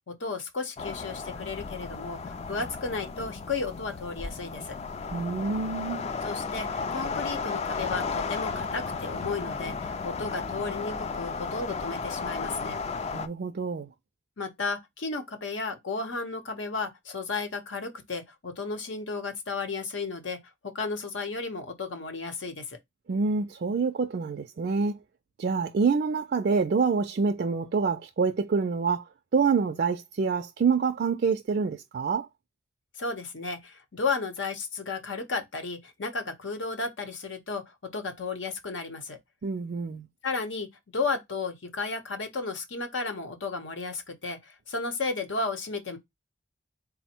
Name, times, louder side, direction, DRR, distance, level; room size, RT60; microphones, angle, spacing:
voice 1, 0.1-4.8 6.2-12.8 14.4-20.4 20.6-22.8 33.0-39.2 40.2-40.7 40.9-46.0, left 4 dB, 85° left, 0.9 m, -33 dB
sound 1, 0.8-13.3, left 4 dB, 35° left, 0.4 m, -34 dB
voice 2, 5.1-6.0 13.1-13.9 23.1-25.0 25.4-29.0 29.3-32.3 39.4-40.1, right 5 dB, 55° right, 0.4 m, -26 dB
4.0 x 2.1 x 4.3 m
head